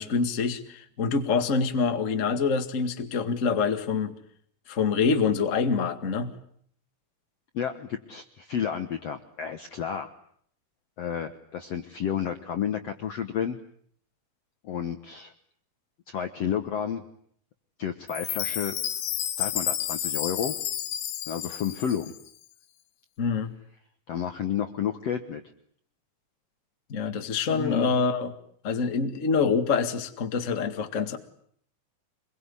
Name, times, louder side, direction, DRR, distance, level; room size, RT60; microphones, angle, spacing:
voice 1, 0.0-4.1 4.7-6.3 23.2-23.5 26.9-28.3 28.6-31.2, left 5 dB, 35° left, 8 dB, 1.3 m, -26 dB
voice 2, 7.5-10.1 11.0-13.6 14.6-15.3 16.1-17.0 17.8-18.7 19.4-20.6 21.2-22.1 24.1-25.4 27.5-27.9, left 8 dB, 60° left, 8 dB, 1.7 m, -31 dB
Chime, 18.1-22.3, left 11 dB, 80° left, 3.5 m, -31 dB
26.0 x 22.0 x 9.9 m, 0.64 s
omnidirectional pair, 4.4 m